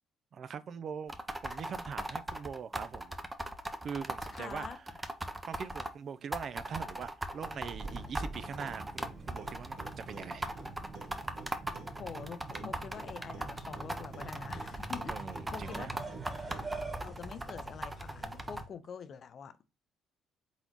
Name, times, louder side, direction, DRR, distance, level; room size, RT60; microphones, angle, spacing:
voice 1, 0.3-1.1 1.4-3.2 3.8-4.8 5.5-10.5 15.1-15.9, right 7 dB, 55° right, 0.4 m, -42 dB
sound 1, 1.1-5.9 6.3-18.6, right 1 dB, 15° right, 0.6 m, -39 dB
voice 2, 4.3-4.8 12.0-16.0 17.0-19.6, left 7 dB, 55° left, 0.5 m, -45 dB
sound 2, 7.4-18.7, right 2 dB, 30° right, 1.8 m, -46 dB
Clock, 7.8-16.9, right 4 dB, 75° right, 1.2 m, -49 dB
4.0 x 3.9 x 3.0 m
supercardioid pair, 70°, 0 cm